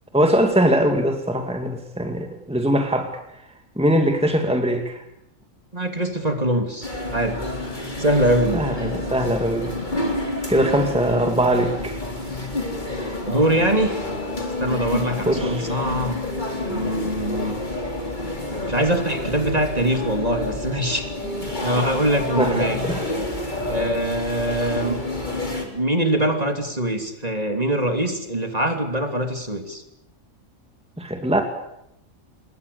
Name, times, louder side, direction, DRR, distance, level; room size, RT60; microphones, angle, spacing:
voice 1, 0.1-3.1 3.8-5.0 8.5-9.7 10.5-12.0 15.3-15.7 22.4-23.0 31.0-31.4, equal, 5° right, 5 dB, 2.3 m, -21 dB
voice 2, 5.7-7.4 8.0-8.6 13.3-14.0 14.6-16.1 16.7-17.6 18.7-22.8 23.7-25.0 25.6-29.8, right 1 dB, 30° right, 5 dB, 3.1 m, -23 dB
sound 1, 6.8-25.7, left 1 dB, 35° left, 4.2 m, -28 dB
27.5 x 22.0 x 7.0 m, 0.82 s
omnidirectional pair, 1.4 m